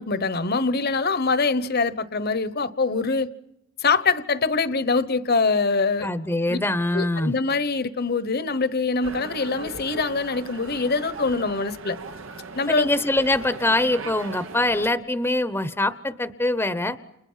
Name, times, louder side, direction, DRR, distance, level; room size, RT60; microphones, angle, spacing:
voice 1, 0.0-3.3 3.8-6.1 6.5-6.6 6.9-12.0 12.5-12.9, left 4 dB, 50° left, 1.2 m, -24 dB
voice 2, 6.0-7.3 12.7-17.0, left 1 dB, 10° left, 0.9 m, -23 dB
sound 1, 9.0-14.9, right 3 dB, 85° right, 1.4 m, -38 dB
30.0 x 28.5 x 5.7 m
head